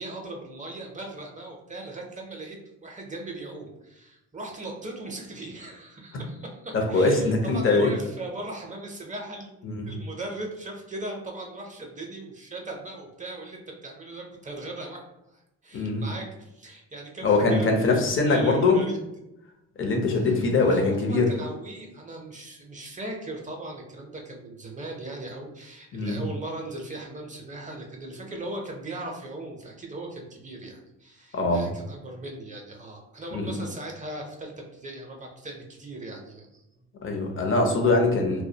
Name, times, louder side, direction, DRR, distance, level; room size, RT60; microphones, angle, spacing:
voice 1, 0.0-2.6 2.8-9.6 9.8-18.0 18.2-19.0 20.1-36.6, right 2 dB, 25° right, 1 dB, 0.5 m, -39 dB
voice 2, 6.7-7.9 9.6-9.9 15.7-16.1 17.2-18.8 19.8-21.3 25.9-26.2 31.3-31.7 33.3-33.5 37.0-38.4, left 3 dB, 45° left, 2 dB, 0.6 m, -22 dB
2.2 x 2.1 x 2.7 m, 0.90 s
cardioid pair, 90°, 30 cm